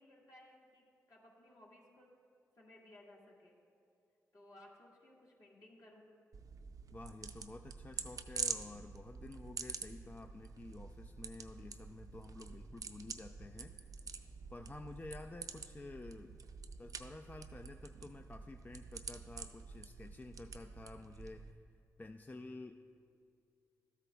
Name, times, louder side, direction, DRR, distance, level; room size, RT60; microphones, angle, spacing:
voice 1, 0.0-2.1 2.6-3.5 4.3-6.1, left 1 dB, 55° left, -4 dB, 1.9 m, -60 dB
sound 1, 6.3-21.5, right 5 dB, 55° right, 0.5 m, -47 dB
voice 2, 6.9-13.7 14.5-16.4 16.8-21.6 22.0-22.7, left 2 dB, 25° left, 6 dB, 0.3 m, -51 dB
12.5 x 8.0 x 2.3 m, 2.4 s
supercardioid pair, 45°, 7 cm